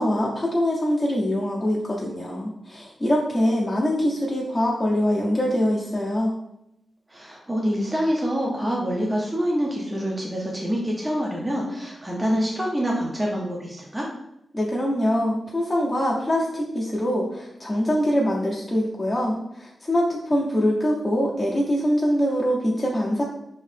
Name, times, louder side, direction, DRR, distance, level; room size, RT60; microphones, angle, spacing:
voice 1, 0.0-6.3 14.5-23.2, equal, 20° left, -5 dB, 0.7 m, -23 dB
voice 2, 7.1-14.1, equal, 20° right, -3 dB, 0.7 m, -26 dB
3.1 x 2.7 x 3.3 m, 0.82 s
cardioid pair, 70°, 0 cm